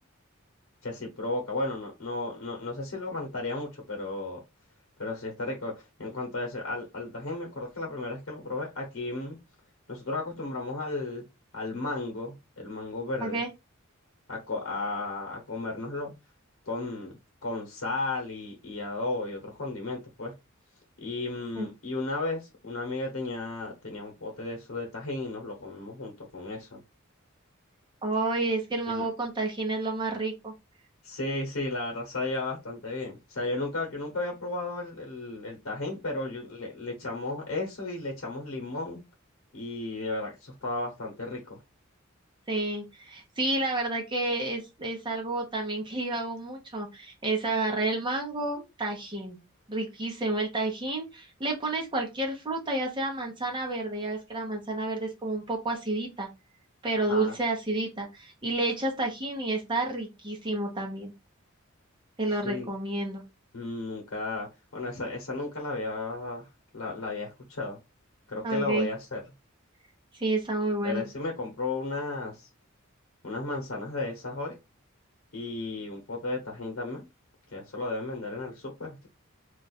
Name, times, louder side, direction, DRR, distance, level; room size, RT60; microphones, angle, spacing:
voice 1, 0.8-4.4 5.0-9.4 9.9-11.2 11.5-13.4 14.3-16.1 16.7-17.1 17.4-20.3 21.0-26.8 28.9-29.1 31.0-39.0 39.5-41.6 57.1-57.4 62.4-62.7 63.5-66.5 66.7-67.8 68.3-69.2 70.8-72.5 73.2-74.6 75.3-77.1 77.5-79.1, left 2 dB, 90° left, 0.9 m, -34 dB
voice 2, 28.0-30.5 42.5-49.4 49.7-56.3 56.8-61.1 62.2-63.2 68.4-68.9 70.1-71.0, right 2 dB, 25° right, 0.7 m, -30 dB
2.4 x 2.3 x 4.0 m
head